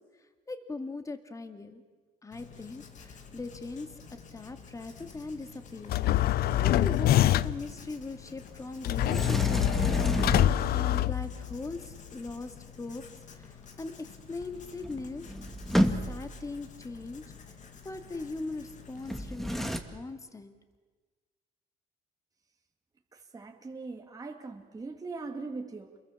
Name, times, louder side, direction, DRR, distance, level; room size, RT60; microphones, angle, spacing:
voice 1, 0.5-1.8 2.2-13.0 13.3-15.3 15.8-17.2 17.8-20.6, left 3 dB, 20° left, 8 dB, 2.3 m, -40 dB
Writing, 2.3-19.4, left 6 dB, 45° left, 2.7 m, -50 dB
sound 1, 5.9-7.7 8.8-11.7, left 13 dB, 65° left, 0.7 m, -25 dB
Sliding door, 9.0-11.0 14.5-14.6 14.8-16.4 19.0-19.8, equal, ahead, 1.9 m, -30 dB
voice 2, 23.1-26.0, right 3 dB, 20° right, 2 dB, 2.3 m, -41 dB
29.0 x 22.0 x 7.3 m, 1.4 s
cardioid pair, 110°, 17 cm